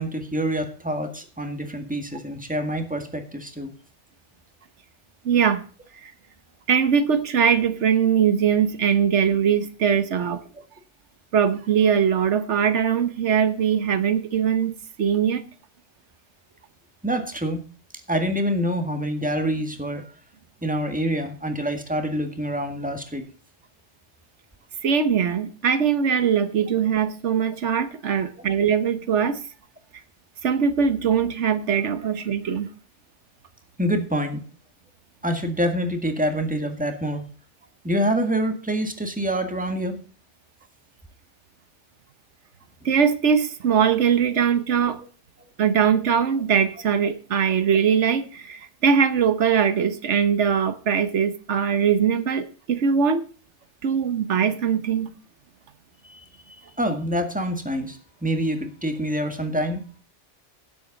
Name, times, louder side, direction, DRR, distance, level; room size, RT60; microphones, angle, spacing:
voice 1, 0.0-3.7 17.0-17.6 18.1-20.0 20.6-23.3 32.0-32.1 33.8-34.4 35.2-37.2 37.8-40.0 56.0-59.8, equal, 5° right, 1.8 m, -26 dB
voice 2, 5.2-5.6 6.0-6.1 6.7-10.4 11.3-14.7 15.0-15.4 24.8-29.4 30.4-32.7 42.8-45.0 45.6-53.2 53.8-55.1, right 7 dB, 85° right, 1.3 m, -21 dB
16.5 x 7.8 x 4.0 m
omnidirectional pair, 1.2 m